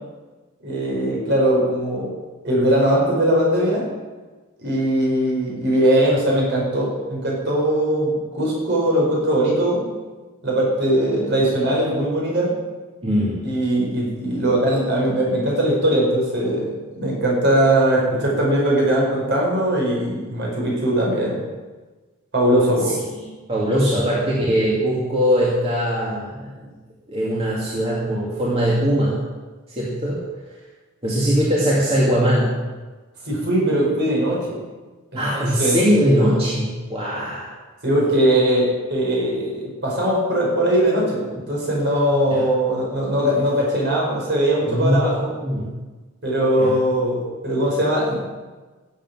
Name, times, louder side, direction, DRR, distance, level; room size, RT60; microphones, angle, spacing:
voice 1, 0.6-2.1 2.4-3.9 4.6-9.9 10.4-12.6 13.4-21.4 22.3-23.0 23.7-23.8 33.3-34.6 35.3-35.8 37.8-45.3 46.2-48.2, right 1 dB, 55° right, -3 dB, 5.2 m, -20 dB
voice 2, 13.0-13.4 23.1-26.7 27.1-29.2 29.8-30.2 31.0-32.6 35.1-37.5 42.3-42.4 44.7-45.7 46.6-46.8, equal, 30° right, -6 dB, 2.4 m, -21 dB
16.0 x 7.9 x 6.2 m, 1.3 s
head